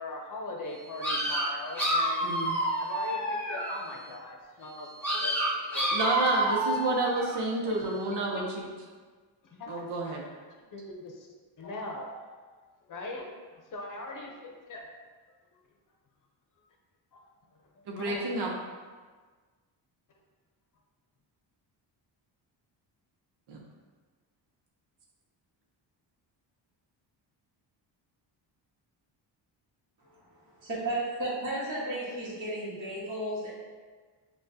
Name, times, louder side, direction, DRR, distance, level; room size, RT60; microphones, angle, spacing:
voice 1, 0.0-2.3 2.8-5.9 7.7-7.8 9.4-9.7 10.0-10.1 10.7-11.3 11.6-12.3 12.9-13.3 13.7-14.9 17.1-17.2 18.0-18.3, left 2 dB, 45° left, 1 dB, 0.7 m, -40 dB
sound 1, 1.0-3.9 5.0-7.5, right 1 dB, 5° left, 1.1 m, -29 dB
voice 2, 2.2-2.6 5.9-8.7 9.7-10.2 17.9-18.5 23.5-23.6, right 2 dB, 60° right, -2 dB, 0.8 m, -30 dB
voice 3, 30.0-33.5, right 1 dB, 45° right, -9 dB, 1.3 m, -34 dB
6.2 x 2.4 x 2.7 m, 1.5 s
cardioid pair, 105°, 44 cm